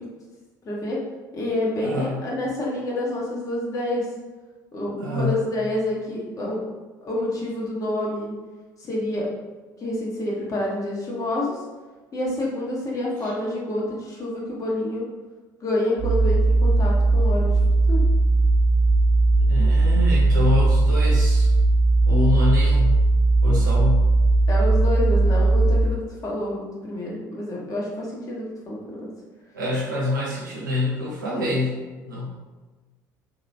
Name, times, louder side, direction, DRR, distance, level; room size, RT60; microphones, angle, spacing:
voice 1, 0.6-1.0 1.3-4.1 4.7-6.6 7.0-8.3 8.8-9.3 9.8-11.6 12.1-15.0 15.6-17.5 17.9-18.0 24.5-29.0, left 1 dB, 35° left, -4 dB, 1.0 m, -28 dB
voice 2, 1.8-2.2 5.0-5.4 13.2-13.3 19.4-21.5 22.1-23.0 23.4-24.1 29.5-31.7 32.1-32.3, left 2 dB, 80° right, -4 dB, 0.8 m, -25 dB
sound 1, 16.0-25.9, right 2 dB, 10° right, 0.6 m, -18 dB
2.9 x 2.9 x 2.7 m, 1.3 s
figure-of-eight pair, 60°, 10 cm